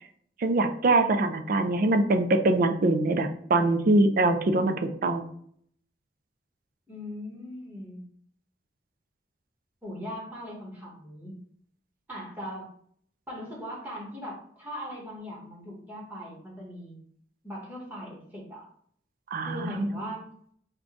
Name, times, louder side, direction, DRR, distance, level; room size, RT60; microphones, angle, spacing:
voice 1, 0.4-4.8 5.0-5.2 19.3-19.9, right 2 dB, 55° right, 8 dB, 0.4 m, -23 dB
voice 2, 6.9-8.1 9.8-11.4 12.1-12.7 13.3-17.0 17.4-18.6 19.4-20.2, equal, 10° right, -3 dB, 1.3 m, -39 dB
3.8 x 2.3 x 3.5 m, 0.62 s
head